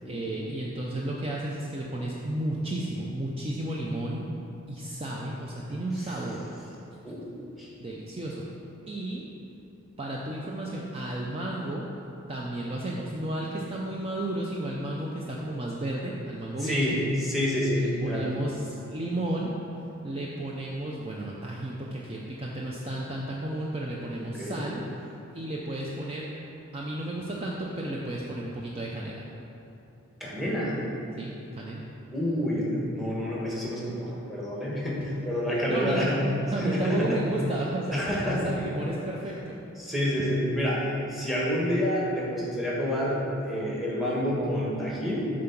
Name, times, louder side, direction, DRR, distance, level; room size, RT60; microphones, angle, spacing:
voice 1, 0.1-4.3 4.7-6.5 7.8-8.4 8.9-9.2 10.0-11.9 12.3-17.0 17.7-26.3 26.7-29.3 31.2-31.9 35.5-36.0 36.5-39.6, right 1 dB, 25° right, -3 dB, 0.5 m, -33 dB
voice 2, 16.6-17.0 17.2-18.3 24.2-24.6 30.2-30.8 32.1-36.2 36.6-37.2 37.9-38.6 39.8-40.8 41.1-45.3, equal, ahead, -5 dB, 1.2 m, -28 dB
7.3 x 3.8 x 5.9 m, 2.8 s
head